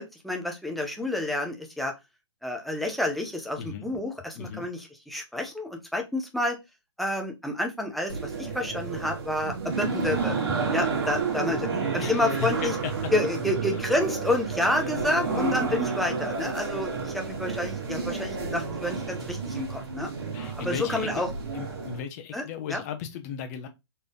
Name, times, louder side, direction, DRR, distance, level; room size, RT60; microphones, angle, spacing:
voice 1, 0.0-1.9 2.4-4.8 5.1-6.6 7.0-10.4 10.7-12.7 13.1-20.1 20.6-21.3 22.3-22.8, left 1 dB, ahead, 0.8 m, -29 dB
voice 2, 4.3-4.7 12.0-13.1 20.3-21.1 21.5-23.7, left 6 dB, 35° left, 1.1 m, -36 dB
sound 1, 8.1-22.0, right 5 dB, 55° right, 2.1 m, -31 dB
4.3 x 3.3 x 3.7 m
hypercardioid pair, 145°, 15 cm